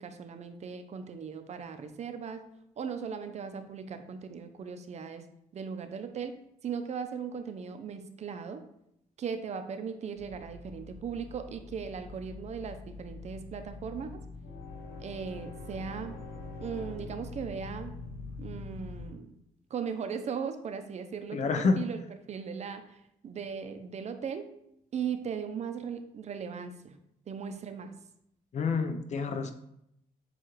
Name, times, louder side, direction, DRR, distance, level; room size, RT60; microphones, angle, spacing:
voice 1, 0.0-2.5 2.8-5.2 5.5-8.6 9.2-14.2 15.0-16.2 16.6-17.9 18.4-19.4 19.7-22.0 22.3-24.5 24.9-27.0 27.3-27.9, right 6 dB, 50° right, 8 dB, 0.5 m, -38 dB
sound 1, 10.2-19.1, left 3 dB, 75° left, 0.9 m, -44 dB
voice 2, 21.3-21.8 28.5-29.5, left 4 dB, 50° left, 8 dB, 0.6 m, -28 dB
7.2 x 2.4 x 3.0 m, 0.78 s
cardioid pair, 85°, 15 cm